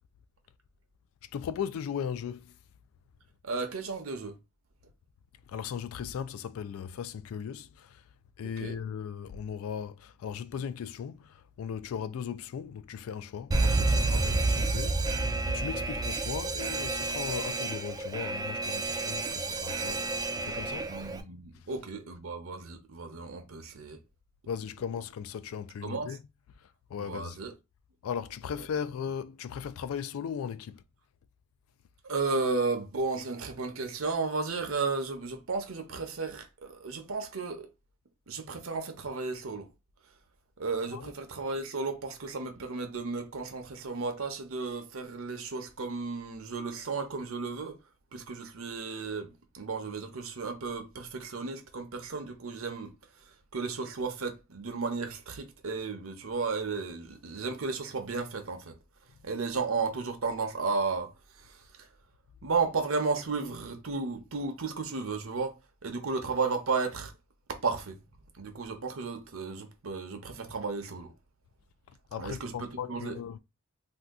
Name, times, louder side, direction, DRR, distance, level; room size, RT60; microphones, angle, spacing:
voice 1, 1.3-2.5 5.5-8.0 8.4-20.1 20.4-21.0 24.5-26.2 26.6-27.4 28.0-30.8 40.9-41.1 72.1-73.4, left 7 dB, 75° left, 0.3 m, -37 dB
voice 2, 3.4-4.4 8.6-8.8 20.9-24.0 25.8-26.2 27.0-27.5 32.0-37.7 38.3-39.7 40.6-47.8 48.1-52.9 53.5-58.7 59.2-61.1 61.4-61.9 62.4-67.1 67.5-68.0 68.4-71.1 72.2-73.2, right 4 dB, 70° right, 0.7 m, -34 dB
Alarm, 13.5-21.2, right 2 dB, 20° right, 0.3 m, -30 dB
2.7 x 2.3 x 3.5 m
head